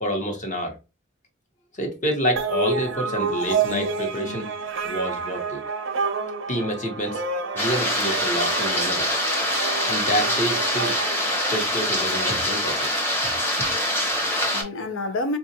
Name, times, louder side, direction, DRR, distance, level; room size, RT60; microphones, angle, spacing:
voice 1, 0.0-0.8 1.7-4.5 4.8-5.8 6.5-7.2 7.5-9.1 9.9-10.9 11.5-12.8 13.6-13.7, equal, 40° left, 0.9 m, -28 dB
sound 1, 2.4-12.1, right 4 dB, 75° right, 0.6 m, -29 dB
sound 2, 7.6-14.6, left 1 dB, 10° left, 0.8 m, -24 dB
voice 2, 13.5-15.4, left 2 dB, 85° left, 0.5 m, -31 dB
3.8 x 2.3 x 2.7 m
head